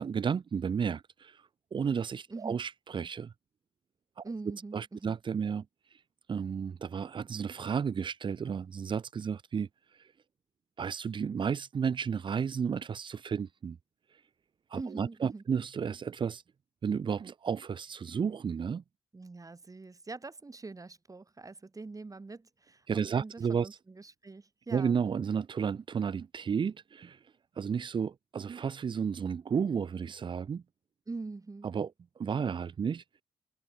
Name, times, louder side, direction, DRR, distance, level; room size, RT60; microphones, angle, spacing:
voice 1, 0.0-1.3 1.7-3.3 4.2-4.3 4.7-5.7 6.3-9.7 10.8-13.8 14.7-16.4 16.8-18.8 22.9-23.7 24.7-27.2 27.6-30.6 31.6-31.9 32.2-33.0, right 6 dB, 45° right, 0.6 m, -32 dB
voice 2, 4.2-5.2 14.7-15.4 19.1-25.0 31.1-31.7, right 3 dB, 30° right, 4.1 m, -43 dB
supercardioid pair, 55°, 11 cm